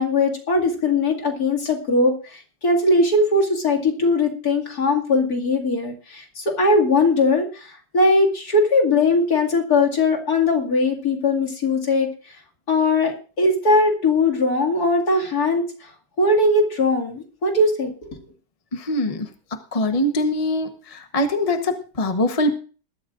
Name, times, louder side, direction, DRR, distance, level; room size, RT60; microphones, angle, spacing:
voice 1, 0.0-12.1 12.7-15.9 16.2-18.2, left 2 dB, 55° left, 0 dB, 2.8 m, -20 dB
voice 2, 18.7-19.3 19.7-22.6, left 1 dB, 25° left, 6 dB, 0.9 m, -23 dB
20.5 x 12.5 x 2.5 m, 0.38 s
omnidirectional pair, 1.9 m